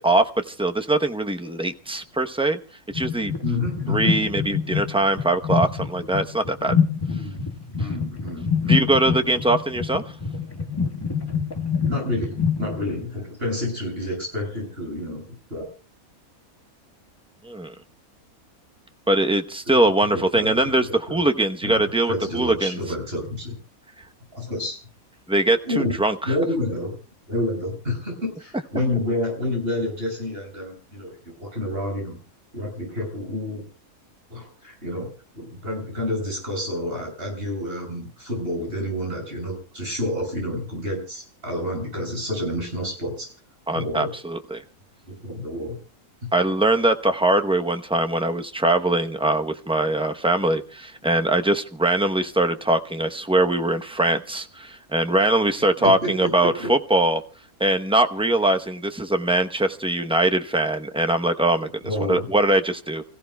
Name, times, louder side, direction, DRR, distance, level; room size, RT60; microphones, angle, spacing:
voice 1, 0.0-2.6 2.9-3.3 3.9-6.7 8.7-10.0 17.4-17.7 19.1-22.8 25.3-26.3 43.7-44.6 46.3-57.2 57.6-61.7 62.1-63.0, right 1 dB, 5° right, 7 dB, 0.6 m, -22 dB
sound 1, 2.9-13.1, left 6 dB, 15° left, 1.5 m, -26 dB
voice 2, 3.4-4.1 7.1-8.8 11.8-15.7 19.7-21.2 21.6-23.6 24.3-24.8 25.6-26.0 26.3-27.0 27.3-32.2 32.5-33.6 34.3-43.3 43.7-44.1 45.1-45.8 55.6-56.7 61.8-62.3, left 1 dB, 40° right, 0 dB, 7.1 m, -29 dB
30.0 x 15.5 x 2.3 m, 0.35 s
omnidirectional pair, 1.5 m